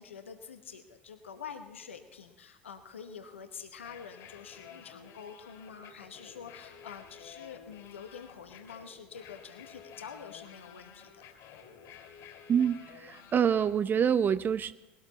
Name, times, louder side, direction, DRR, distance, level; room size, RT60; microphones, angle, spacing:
voice 1, 0.0-11.2, left 6 dB, 85° left, 7 dB, 1.0 m, -47 dB
sound 1, 3.7-13.7, left 7 dB, 55° left, 2.8 m, -52 dB
voice 2, 12.5-14.7, right 8 dB, 30° right, 15 dB, 0.4 m, -26 dB
19.5 x 12.5 x 4.0 m, 1.1 s
figure-of-eight pair, 70°, 7 cm